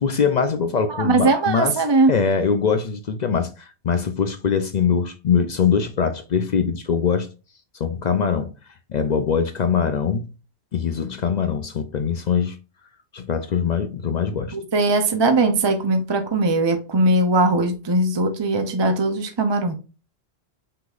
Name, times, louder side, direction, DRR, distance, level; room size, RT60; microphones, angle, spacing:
voice 1, 0.0-1.8 2.1-7.3 7.8-8.5 8.9-10.3 10.7-12.6 13.1-14.6, left 6 dB, 50° left, 0.5 m, -22 dB
voice 2, 0.9-2.1 14.5-19.7, right 2 dB, 30° right, 0.5 m, -20 dB
5.5 x 3.9 x 2.4 m
omnidirectional pair, 1.1 m